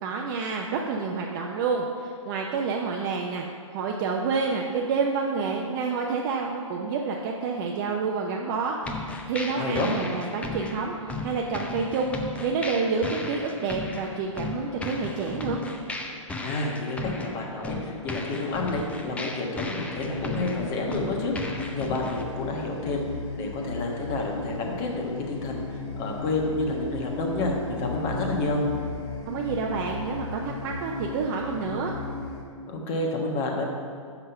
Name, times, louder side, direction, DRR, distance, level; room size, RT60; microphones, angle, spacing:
voice 1, 0.0-3.4 3.7-8.8 9.3-10.9 11.2-15.6 29.3-31.9, right 4 dB, 40° right, 0 dB, 0.6 m, -28 dB
sound 1, 8.8-22.2, left 3 dB, 5° left, 0.5 m, -36 dB
voice 2, 9.5-9.9 16.4-21.3 21.7-23.0 23.4-28.6 32.7-33.7, left 2 dB, 35° left, 0 dB, 1.4 m, -29 dB
sound 2, 19.9-32.4, left 3 dB, 50° left, 1.9 m, -35 dB
6.0 x 5.5 x 6.7 m, 2.2 s
hypercardioid pair, 125°, 17 cm